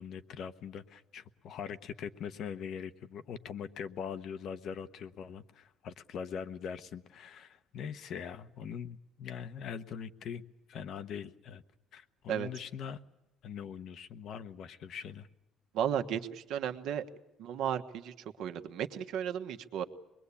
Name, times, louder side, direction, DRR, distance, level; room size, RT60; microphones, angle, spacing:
voice 1, 0.0-11.6 11.9-13.0 13.4-15.3, left 7 dB, 60° left, 12 dB, 1.0 m, -42 dB
voice 2, 15.7-17.0 17.4-19.8, right 9 dB, 75° right, 6 dB, 1.3 m, -34 dB
24.5 x 21.0 x 8.5 m, 0.94 s
cardioid pair, 115°, 0 cm